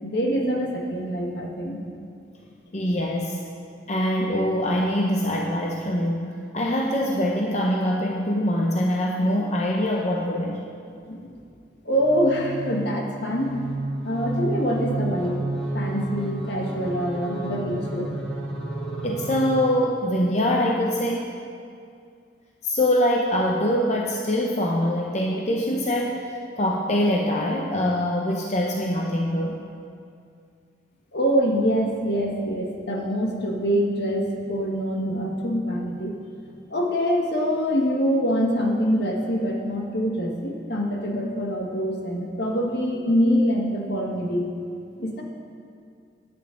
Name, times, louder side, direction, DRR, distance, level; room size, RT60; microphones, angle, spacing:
voice 1, 0.0-1.8 11.0-11.3 11.8-13.5 14.0-15.4 15.7-18.2 31.1-36.1 36.7-44.5 45.0-45.2, equal, 65° left, 0 dB, 1.5 m, -25 dB
voice 2, 2.7-3.4 3.9-6.2 6.5-10.6 19.0-21.3 22.6-26.3 26.6-29.6, left 1 dB, 35° left, -1 dB, 0.7 m, -23 dB
sound 1, 11.9-19.9, right 2 dB, 5° left, 2.2 m, -31 dB
15.0 x 9.2 x 3.8 m, 2.4 s
head